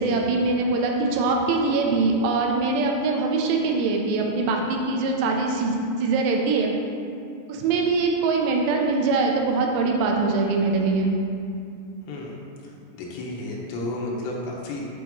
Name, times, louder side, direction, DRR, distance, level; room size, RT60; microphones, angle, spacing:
voice 1, 0.0-6.7 7.5-11.1, right 3 dB, 85° right, 1 dB, 2.9 m, -23 dB
voice 2, 13.0-14.8, left 2 dB, 90° left, -2 dB, 3.2 m, -31 dB
8.1 x 6.3 x 2.9 m, 2.5 s
omnidirectional pair, 4.9 m